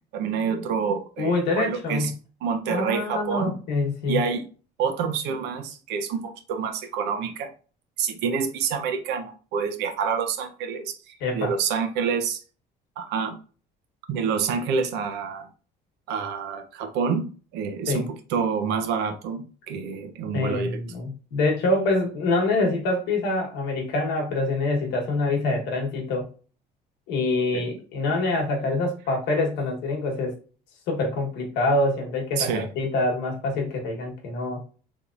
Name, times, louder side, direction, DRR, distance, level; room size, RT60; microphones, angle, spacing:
voice 1, 0.1-2.1 2.4-3.6 4.1-4.4 4.8-7.5 8.0-12.4 13.0-13.4 14.1-15.5 16.1-17.3 17.5-20.8 27.5-27.6 32.4-32.7, right 6 dB, 80° right, 7 dB, 0.7 m, -27 dB
voice 2, 1.2-2.1 2.7-4.2 11.2-11.5 17.9-18.0 20.3-26.3 27.1-30.3 30.9-34.6, left 2 dB, 80° left, 0 dB, 1.2 m, -25 dB
3.5 x 2.9 x 2.5 m, 0.37 s
cardioid pair, 150°, 17 cm